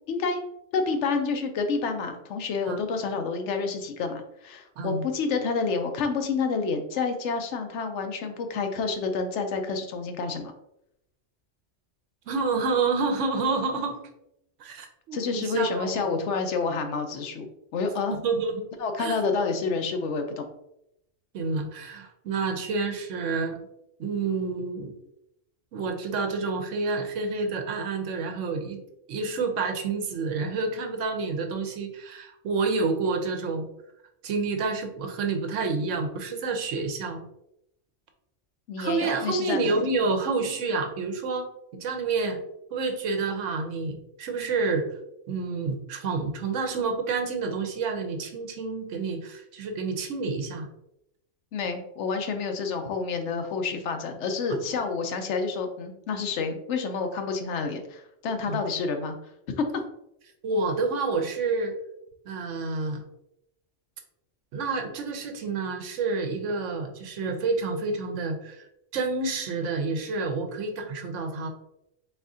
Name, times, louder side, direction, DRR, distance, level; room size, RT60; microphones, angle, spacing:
voice 1, 0.1-0.4 0.7-10.5 15.1-18.1 18.8-20.5 38.7-39.8 51.5-59.1 59.6-59.7, left 4 dB, 75° left, 6 dB, 0.9 m, -29 dB
voice 2, 12.3-14.0 14.6-16.2 18.1-18.7 19.0-19.2 21.3-23.6 24.0-24.9 25.7-28.8 29.1-33.7 34.2-37.2 38.8-41.5 41.8-42.4 42.7-44.9 45.3-50.7 54.5-54.8 58.5-58.6 60.4-61.7 62.3-63.0 64.5-68.7 68.9-71.5, right 4 dB, 90° right, 5 dB, 1.0 m, -29 dB
4.1 x 3.5 x 2.6 m, 0.80 s
omnidirectional pair, 1.2 m